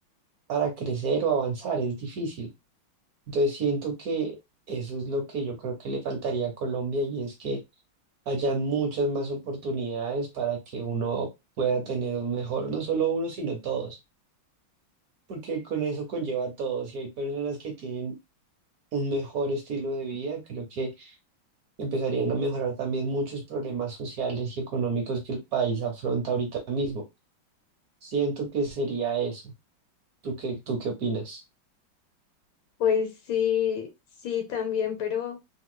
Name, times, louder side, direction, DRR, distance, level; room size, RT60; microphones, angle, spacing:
voice 1, 0.5-2.5 3.3-4.4 4.7-7.6 8.3-11.3 11.6-14.0 15.3-18.1 18.9-21.2 21.8-27.0 28.0-29.5 30.2-31.4, right 4 dB, 60° right, 4 dB, 1.0 m, -29 dB
voice 2, 32.8-33.9 34.2-35.4, left 8 dB, 75° left, 5 dB, 1.5 m, -26 dB
3.7 x 2.8 x 2.2 m, 0.21 s
omnidirectional pair, 2.2 m